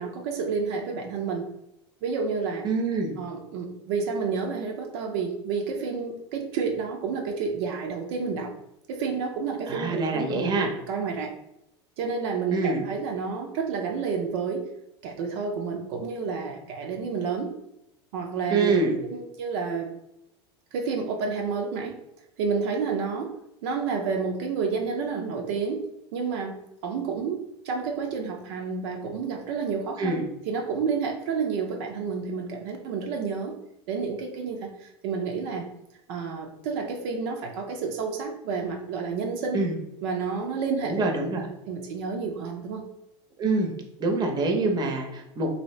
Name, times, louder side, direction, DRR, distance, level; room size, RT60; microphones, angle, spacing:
voice 1, 0.0-1.5 2.0-2.7 3.2-8.5 8.9-10.6 10.9-11.3 12.0-14.7 15.0-17.5 18.1-18.7 19.1-19.9 20.7-22.0 22.4-23.4 23.6-33.6 33.9-35.7 36.1-39.6 40.0-41.1 41.4-42.9, right 5 dB, 70° right, 2 dB, 0.5 m, -30 dB
voice 2, 2.6-3.1 9.7-10.7 12.5-12.8 18.5-19.0 30.0-30.2 39.5-39.8 40.8-41.4 43.4-43.7 44.0-45.5, right 3 dB, 30° right, 3 dB, 0.7 m, -25 dB
2.7 x 2.7 x 3.1 m, 0.84 s
supercardioid pair, 110°, 14 cm